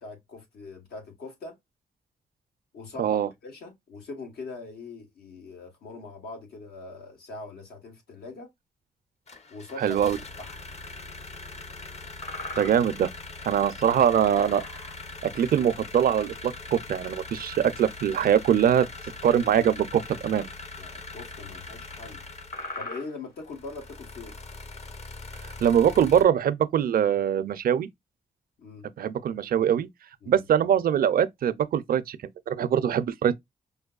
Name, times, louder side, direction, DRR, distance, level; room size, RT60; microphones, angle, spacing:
voice 1, 0.0-1.5 2.7-3.2 3.4-8.5 9.5-10.0 10.4-10.6 13.6-14.0 20.8-22.2 22.7-24.4 28.6-28.9 30.2-30.4, left 3 dB, 85° left, 1.5 m, -42 dB
voice 2, 3.0-3.3 9.8-10.2 12.6-13.1 13.5-14.6 15.3-18.9 19.2-20.5 25.4-27.9 29.0-29.9 30.3-32.2 32.5-33.4, right 9 dB, 70° right, 0.5 m, -23 dB
sound 1, 9.3-22.8 23.4-26.2, left 3 dB, 45° left, 0.8 m, -42 dB
sound 2, 12.2-13.0 13.3-13.5 14.3-15.2 16.3-16.4 16.8-17.1 18.3-18.4 20.1-20.3 20.6-20.7 21.4-21.6 22.0-22.2 22.5-23.3 24.4-24.6, left 2 dB, 65° left, 2.2 m, -40 dB
5.3 x 2.2 x 2.3 m
cardioid pair, 60°, 16 cm